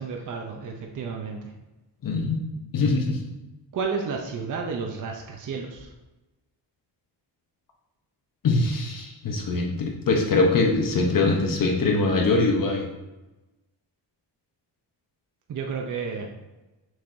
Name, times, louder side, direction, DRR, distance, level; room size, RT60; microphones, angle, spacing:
voice 1, 0.0-1.5 3.7-5.9 15.5-16.3, right 5 dB, 45° right, 1 dB, 0.7 m, -31 dB
voice 2, 2.0-2.4 2.7-3.3 8.4-12.9, left 3 dB, 50° left, 1 dB, 0.9 m, -23 dB
6.3 x 6.2 x 2.6 m, 1.1 s
wide cardioid pair, 165°, 43 cm